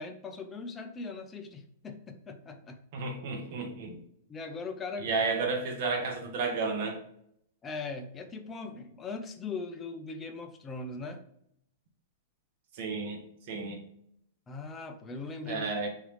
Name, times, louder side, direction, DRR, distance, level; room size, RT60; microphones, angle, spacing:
voice 1, 0.0-2.8 4.3-5.2 7.6-11.2 14.5-15.7, left 3 dB, 15° left, 6 dB, 0.4 m, -40 dB
voice 2, 2.9-4.0 5.0-7.0 12.7-13.2 13.5-13.8 15.5-15.9, right 4 dB, 45° right, 2 dB, 0.9 m, -32 dB
3.7 x 3.2 x 3.2 m, 0.72 s
supercardioid pair, 170°, 0 cm